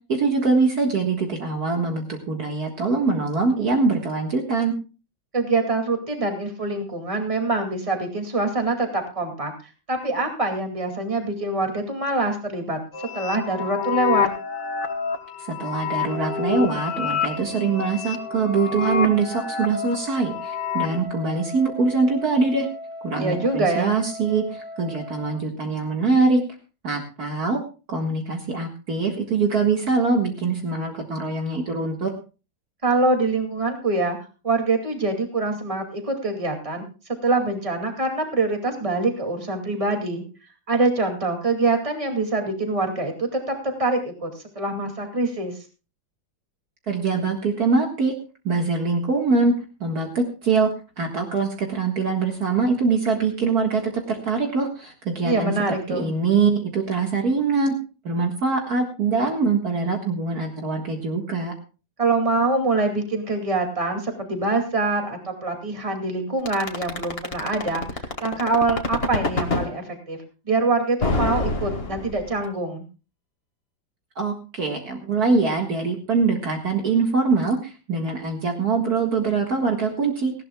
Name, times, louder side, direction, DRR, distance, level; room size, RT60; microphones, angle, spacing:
voice 1, 0.1-4.8 15.5-22.7 23.0-26.4 26.8-27.6 27.9-32.1 46.9-48.1 48.4-49.5 49.8-50.7 51.0-55.5 55.9-57.7 58.0-61.5 74.2-80.3, right 4 dB, 55° right, 2 dB, 2.2 m, -23 dB
voice 2, 5.3-9.5 9.9-12.8 13.1-14.3 23.1-23.9 32.8-34.2 34.4-36.8 37.2-40.2 40.7-45.5 55.2-56.1 62.0-70.2 70.5-72.8, right 3 dB, 15° right, 3 dB, 2.4 m, -24 dB
sound 1, 12.9-21.0, left 7 dB, 65° left, 1.8 m, -28 dB
Wind instrument woodwind instrument, 16.1-25.4, left 1 dB, 75° right, 4.2 m, -38 dB
sound 2, 66.5-69.7 71.0-72.4, left 2 dB, 35° left, 1.9 m, -25 dB
18.5 x 15.5 x 2.3 m, 0.33 s
omnidirectional pair, 2.0 m